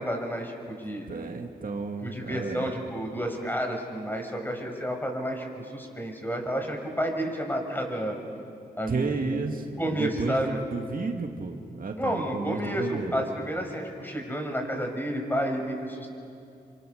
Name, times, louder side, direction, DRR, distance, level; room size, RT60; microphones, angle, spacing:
voice 1, 0.0-1.0 2.0-8.2 8.8-9.1 9.8-10.6 12.0-16.1, equal, 10° left, 3 dB, 6.2 m, -31 dB
voice 2, 1.1-2.7 8.9-13.2, right 4 dB, 55° right, 4 dB, 2.0 m, -32 dB
27.5 x 25.0 x 6.7 m, 2.6 s
cardioid pair, 50°, 17 cm